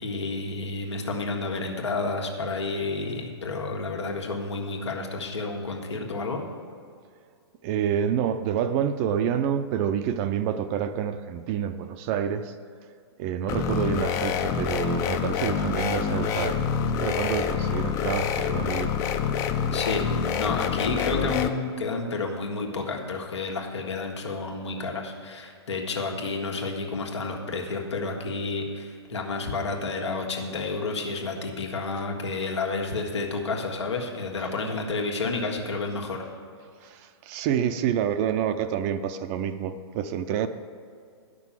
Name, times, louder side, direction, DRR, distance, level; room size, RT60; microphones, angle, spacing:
voice 1, 0.0-6.4 19.7-36.2, left 3 dB, 90° left, 1 dB, 1.7 m, -30 dB
voice 2, 7.6-12.5 13.2-19.0 36.8-40.5, right 8 dB, 30° right, 10 dB, 0.5 m, -28 dB
sound 1, 13.5-21.5, left 7 dB, 20° left, 0.4 m, -27 dB
10.5 x 6.1 x 7.3 m, 2.3 s
hypercardioid pair, 145°, 14 cm